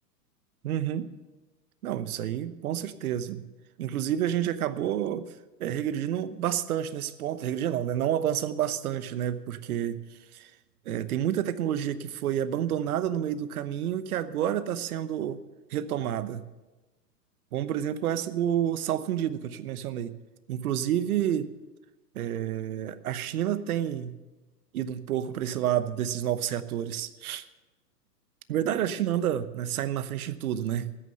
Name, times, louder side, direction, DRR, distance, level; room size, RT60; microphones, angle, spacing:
voice 1, 0.6-1.1 1.8-3.5 3.8-5.3 5.6-10.0 10.3-10.5 10.9-15.4 15.7-16.4 17.5-20.1 20.5-21.5 22.1-24.2 24.7-27.4 28.5-30.9, right 10 dB, 60° right, 14 dB, 1.0 m, -29 dB
14.0 x 10.0 x 6.7 m, 1.1 s
hypercardioid pair, 125°, 49 cm